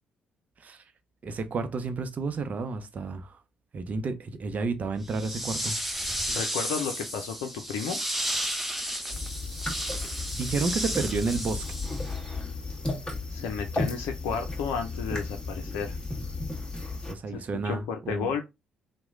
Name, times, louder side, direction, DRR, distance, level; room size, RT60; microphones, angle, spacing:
voice 1, 1.2-3.4 3.7-5.7 9.0-9.1 10.3-11.6 17.1-18.3, right 4 dB, 45° right, 0.6 m, -31 dB
sound 1, 5.0-12.3, equal, 5° right, 0.7 m, -33 dB
voice 2, 6.3-8.0 13.3-16.0 17.3-18.5, left 6 dB, 75° left, 0.5 m, -32 dB
sound 2, 9.1-17.1, left 3 dB, 20° left, 1.5 m, -34 dB
3.0 x 2.2 x 3.7 m
hypercardioid pair, 50°, 4 cm